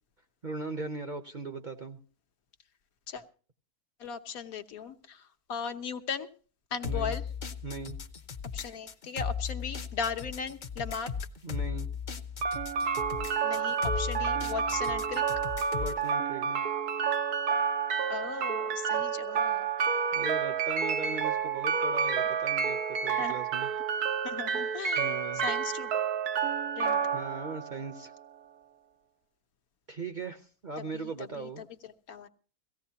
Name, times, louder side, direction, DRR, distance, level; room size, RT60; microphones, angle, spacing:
voice 1, 0.4-2.0 6.8-7.2 7.6-8.0 11.4-11.9 15.7-16.6 20.1-23.7 25.0-25.4 27.1-28.1 29.9-31.6, right 3 dB, 40° right, 7 dB, 0.7 m, -39 dB
voice 2, 4.0-6.3 6.7-7.2 8.5-11.1 13.4-15.2 18.1-19.7 23.2-23.3 23.6-23.7 24.2-25.9 26.8-27.0 30.8-32.3, left 6 dB, 75° left, 8 dB, 1.4 m, -38 dB
sound 1, 6.8-16.0, left 6 dB, 40° left, 0.8 m, -37 dB
sound 2, 12.4-28.4, right 6 dB, 90° right, 1.5 m, -30 dB
18.0 x 15.5 x 2.8 m, 0.38 s
omnidirectional pair, 1.6 m